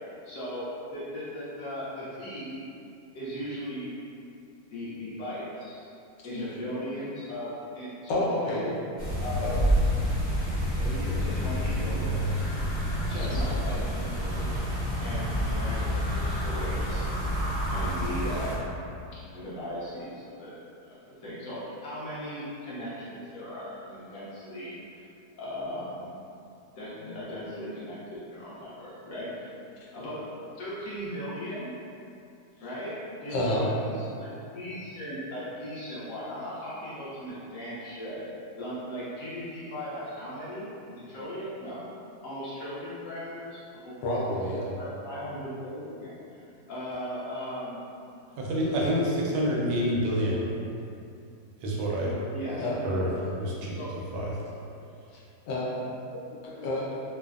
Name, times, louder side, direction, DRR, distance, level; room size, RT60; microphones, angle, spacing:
voice 1, 0.2-2.6 3.1-3.9 4.7-5.9 6.2-8.2 8.4-9.6 10.7-12.4 13.1-17.0 17.7-18.8 19.3-20.6 20.8-24.7 25.4-26.1 26.8-29.5 29.9-30.2 30.5-31.7 32.6-32.9 33.2-33.9 34.2-38.2 38.6-41.8 42.2-43.9 44.8-46.4 46.7-47.8 48.3-48.8 52.3-53.3 53.7-54.0, equal, 65° left, -9 dB, 0.9 m, -37 dB
voice 2, 8.1-8.7 9.4-9.7 29.8-29.9 33.3-33.7 44.0-44.7 52.5-52.8 55.1-55.2 55.5-55.8 56.1-57.0, left 1 dB, 85° left, -5 dB, 1.2 m, -30 dB
sound 1, 9.0-18.6, equal, 55° right, 0.4 m, -28 dB
voice 3, 48.4-50.5 51.6-52.2 52.8-53.1 53.4-53.7 54.1-54.3, equal, 85° right, -4 dB, 1.2 m, -27 dB
3.3 x 2.0 x 2.3 m, 2.6 s
omnidirectional pair, 1.8 m